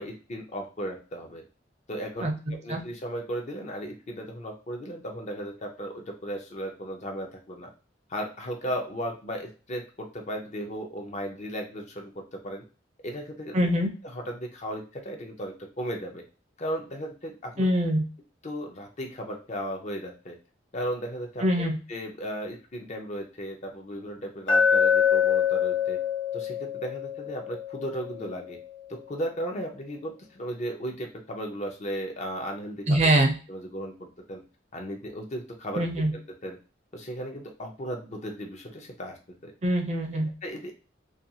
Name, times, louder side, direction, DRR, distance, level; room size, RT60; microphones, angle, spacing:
voice 1, 0.0-1.4 1.9-7.7 8.1-12.6 13.0-13.7 14.1-16.2 16.6-17.7 18.4-20.4 20.7-26.0 26.3-28.6 28.9-33.1 33.5-34.4 34.7-35.8 36.1-36.6 36.9-39.2 39.4-39.5 40.4-40.7, equal, 40° left, 2 dB, 0.6 m, -36 dB
voice 2, 13.5-13.9 17.6-18.0 21.4-21.8 32.9-33.3 35.8-36.1 39.6-40.3, right 1 dB, 40° right, 4 dB, 0.5 m, -23 dB
Glass, 24.5-28.6, left 7 dB, 75° left, 0.8 m, -25 dB
2.4 x 2.3 x 2.7 m, 0.34 s
head